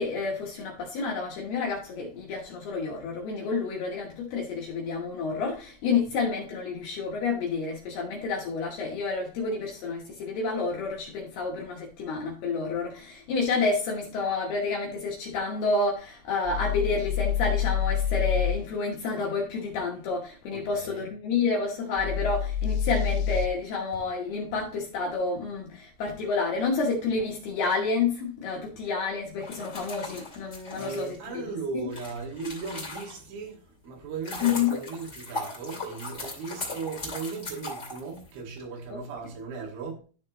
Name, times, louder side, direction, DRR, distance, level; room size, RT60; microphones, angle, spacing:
voice 1, 0.0-31.4 31.7-31.9 34.4-34.8 38.9-39.0, left 4 dB, 70° left, 2.6 m, -29 dB
sound 1, 16.5-18.6 22.0-23.5, left 9 dB, 90° left, 3.2 m, -27 dB
voice 2, 20.5-21.1 30.8-40.0, right 4 dB, 75° right, 4.3 m, -37 dB
sound 2, 29.3-33.4 33.9-38.6, left 2 dB, 30° left, 1.2 m, -38 dB
13.0 x 4.3 x 2.9 m
omnidirectional pair, 5.8 m